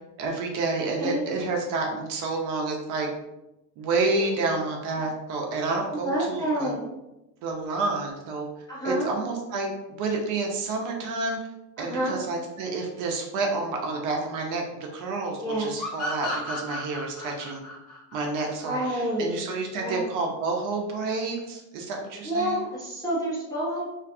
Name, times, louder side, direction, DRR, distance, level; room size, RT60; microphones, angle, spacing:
voice 1, 0.2-3.1 3.8-6.7 7.4-8.5 8.8-11.4 11.8-14.6 14.9-17.6 18.1-22.6, right 3 dB, 45° right, 1 dB, 0.5 m, -29 dB
voice 2, 5.9-6.9 8.7-9.1 11.8-12.2 15.4-15.7 18.6-19.3 19.7-20.0 22.2-23.8, equal, 10° left, -8 dB, 0.4 m, -28 dB
sound 1, 15.8-19.2, left 1 dB, 40° left, 0.8 m, -34 dB
2.5 x 2.2 x 2.5 m, 0.95 s
supercardioid pair, 140°, 44 cm